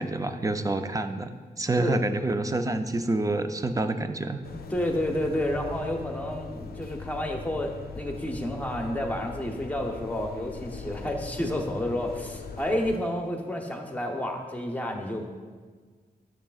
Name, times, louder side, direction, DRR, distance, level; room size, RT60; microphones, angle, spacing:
voice 1, 0.0-4.4, right 2 dB, 20° right, 8 dB, 0.5 m, -28 dB
sound 1, 4.4-13.0, left 5 dB, 70° left, 0.5 m, -40 dB
voice 2, 4.7-15.3, left 1 dB, 10° left, 2 dB, 0.9 m, -30 dB
10.0 x 6.5 x 2.4 m, 1.5 s
wide cardioid pair, 95°, 16 cm